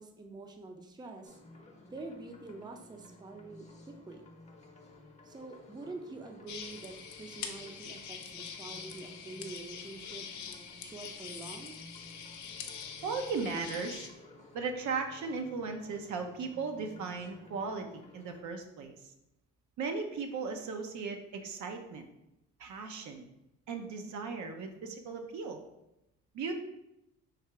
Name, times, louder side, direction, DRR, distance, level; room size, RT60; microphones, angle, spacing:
voice 1, 0.0-1.3 1.9-4.2 5.2-11.8, right 3 dB, 15° right, 3 dB, 0.5 m, -46 dB
sound 1, 1.2-18.4, left 2 dB, 25° left, 0.7 m, -55 dB
sound 2, 6.5-14.1, left 7 dB, 70° left, 0.6 m, -44 dB
voice 2, 13.0-14.1 14.5-19.0 19.8-22.1 22.6-23.3 23.7-25.6 26.3-26.5, right 4 dB, 70° right, 5 dB, 0.7 m, -37 dB
3.4 x 2.8 x 4.5 m, 0.88 s
cardioid pair, 90°, 30 cm